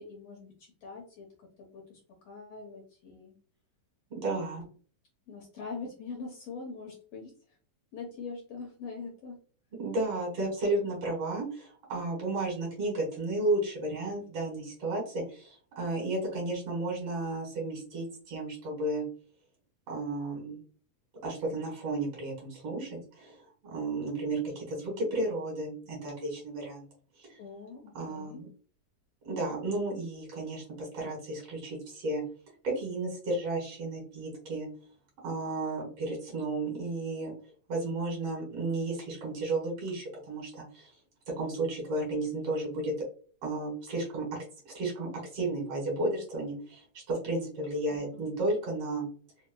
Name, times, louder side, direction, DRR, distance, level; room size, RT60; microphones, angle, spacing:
voice 1, 0.0-2.0 2.2-3.4 4.2-4.7 5.3-7.3 7.9-9.4 27.4-28.4 47.9-48.3, left 4 dB, 70° left, -1 dB, 1.6 m, -43 dB
voice 2, 4.1-4.6 9.8-19.0 19.9-20.6 21.2-26.9 27.2-27.3 28.0-28.5 29.2-32.2 32.6-34.7 35.2-37.3 37.7-40.9 41.4-42.9 43.4-44.4 44.7-49.1, right 2 dB, 60° right, -1 dB, 2.1 m, -33 dB
4.8 x 2.1 x 2.3 m, 0.42 s
omnidirectional pair, 3.3 m